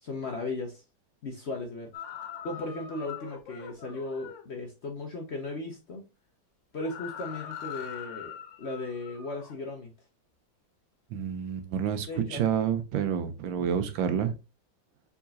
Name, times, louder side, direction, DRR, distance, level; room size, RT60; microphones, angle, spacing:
voice 1, 0.0-0.8 1.2-1.9 2.4-6.0 6.7-9.9 12.1-12.4, left 2 dB, 55° left, 0.8 m, -36 dB
sound 1, 1.9-4.5 6.8-9.7, left 9 dB, 85° left, 1.5 m, -42 dB
voice 2, 11.1-14.3, right 8 dB, 90° right, 1.5 m, -29 dB
4.6 x 4.2 x 2.7 m
omnidirectional pair, 2.0 m